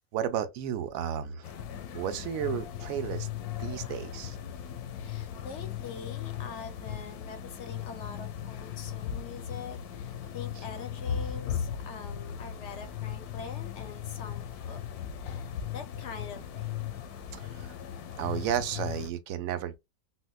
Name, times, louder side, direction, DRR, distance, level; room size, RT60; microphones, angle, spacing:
voice 1, 0.1-1.5 1.9-3.3 3.6-4.4 17.3-17.7 18.2-19.8, right 10 dB, 70° right, 0.9 m, -33 dB
sound 1, 1.4-19.1, left 9 dB, 80° left, 1.1 m, -37 dB
voice 2, 4.9-14.8 15.1-16.9, left 5 dB, 65° left, 0.8 m, -44 dB
4.2 x 2.1 x 2.2 m
omnidirectional pair, 1.6 m